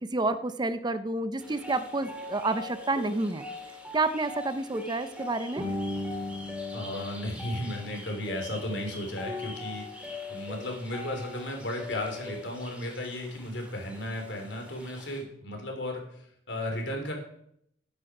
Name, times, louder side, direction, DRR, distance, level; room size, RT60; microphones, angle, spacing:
voice 1, 0.0-3.4 3.9-5.6, right 2 dB, 25° right, 12 dB, 0.6 m, -29 dB
sound 1, 1.4-15.2, left 2 dB, 5° right, 2.6 m, -40 dB
voice 2, 6.7-16.0 16.5-17.1, left 1 dB, 70° left, 2 dB, 3.4 m, -35 dB
12.5 x 9.8 x 4.9 m, 0.71 s
head